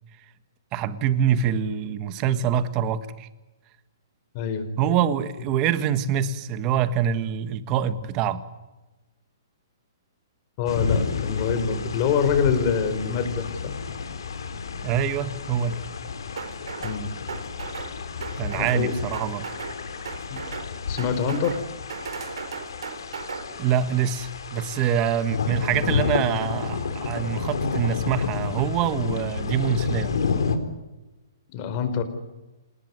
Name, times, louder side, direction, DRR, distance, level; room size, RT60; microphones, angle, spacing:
voice 1, 0.7-3.3 4.8-8.4 14.8-15.8 18.3-19.5 23.5-30.1, right 8 dB, 25° right, 13 dB, 1.5 m, -25 dB
voice 2, 4.3-4.6 10.6-13.7 16.8-17.1 18.6-18.9 20.3-20.4 20.9-21.6 31.5-32.0, left 6 dB, 30° left, 10 dB, 4.5 m, -25 dB
sound 1, 10.7-30.6, left 5 dB, 80° left, 4.0 m, -30 dB
sound 2, 16.4-17.0 17.3-17.9 18.2-18.8 19.1-19.8 20.0-20.7 21.0-21.6 21.9-23.4, right 6 dB, 80° right, 4.6 m, -36 dB
28.0 x 19.5 x 9.7 m, 1.1 s
hypercardioid pair, 160°, 2 cm